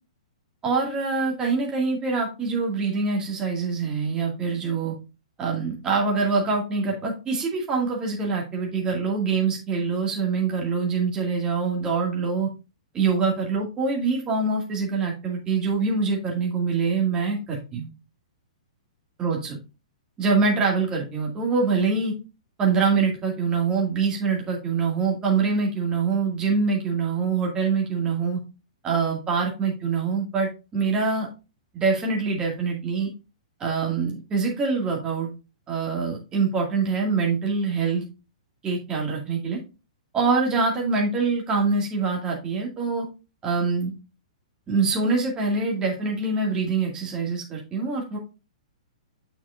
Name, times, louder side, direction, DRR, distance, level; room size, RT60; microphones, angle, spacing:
voice 1, 0.6-4.9 5.4-12.5 12.9-17.9 19.2-19.6 20.2-22.1 22.6-28.4 28.8-31.3 31.7-33.1 33.6-35.3 35.7-38.0 38.6-39.6 40.1-43.1 43.4-43.9 44.7-48.2, right 4 dB, 20° right, -1 dB, 2.1 m, -24 dB
7.3 x 6.8 x 2.5 m, 0.30 s
figure-of-eight pair, 115°, 4 cm